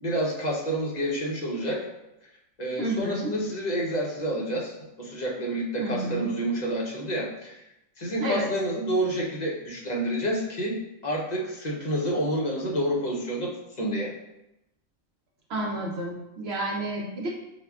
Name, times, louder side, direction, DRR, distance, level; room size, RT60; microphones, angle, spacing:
voice 1, 0.0-1.9 2.6-4.7 5.0-7.6 8.0-10.8 11.0-14.1, right 1 dB, 40° left, -3 dB, 0.7 m, -29 dB
voice 2, 2.8-3.3 5.8-6.4 8.2-8.5 15.5-17.3, right 1 dB, 60° right, -2 dB, 0.8 m, -30 dB
6.4 x 2.2 x 2.3 m, 0.89 s
omnidirectional pair, 1.3 m